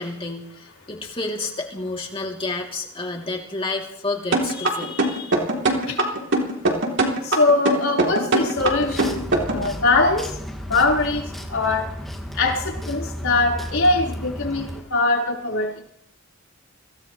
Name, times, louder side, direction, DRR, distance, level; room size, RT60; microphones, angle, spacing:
voice 1, 0.0-5.3, left 3 dB, 25° left, 0 dB, 2.9 m, -30 dB
sound 1, 4.3-9.7, right 2 dB, 60° right, 3.2 m, -21 dB
voice 2, 7.2-10.4 10.7-11.9 12.3-15.8, left 3 dB, 75° left, -2 dB, 4.4 m, -22 dB
sound 2, 8.6-14.8, equal, ahead, 2.1 m, -33 dB
25.0 x 17.5 x 3.2 m, 0.73 s
head